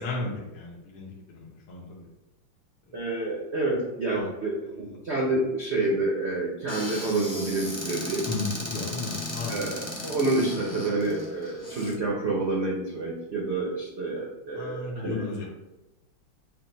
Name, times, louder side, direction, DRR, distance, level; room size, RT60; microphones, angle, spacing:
voice 1, 0.0-2.1 2.9-3.0 4.1-4.3 4.8-4.9 8.3-9.5 14.6-15.5, left 3 dB, 75° left, -4 dB, 1.8 m, -34 dB
voice 2, 2.9-8.3 9.5-15.4, right 2 dB, 85° right, -3 dB, 0.6 m, -28 dB
Squeak / Cupboard open or close, 6.7-11.9, left 1 dB, 30° left, 0.5 m, -36 dB
5.8 x 2.0 x 4.4 m, 1.0 s
omnidirectional pair, 2.4 m